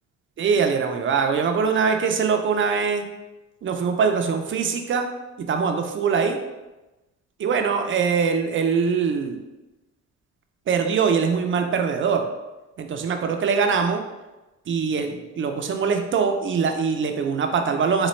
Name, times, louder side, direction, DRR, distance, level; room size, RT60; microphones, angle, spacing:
voice 1, 0.4-3.0 3.6-5.1 5.4-6.4 7.4-9.4 10.7-12.3 12.8-14.0 14.7-18.1, right 5 dB, 40° right, 5 dB, 0.5 m, -22 dB
4.1 x 2.2 x 3.1 m, 1.1 s
cardioid pair, 90°, 30 cm